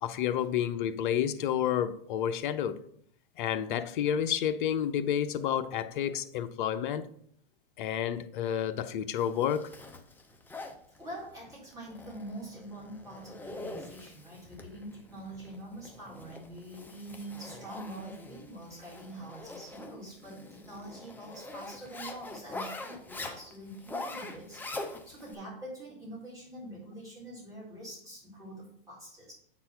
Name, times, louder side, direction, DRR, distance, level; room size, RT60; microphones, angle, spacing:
voice 1, 0.0-2.8 3.4-7.1 7.8-9.7, left 9 dB, 60° left, 0.8 m, -30 dB
Zipper (clothing), 9.2-25.3, left 2 dB, 5° left, 0.7 m, -44 dB
voice 2, 11.0-24.7 25.0-29.3, right 1 dB, 10° right, 3.8 m, -45 dB
8.6 x 4.2 x 5.7 m
hypercardioid pair, 125°, 29 cm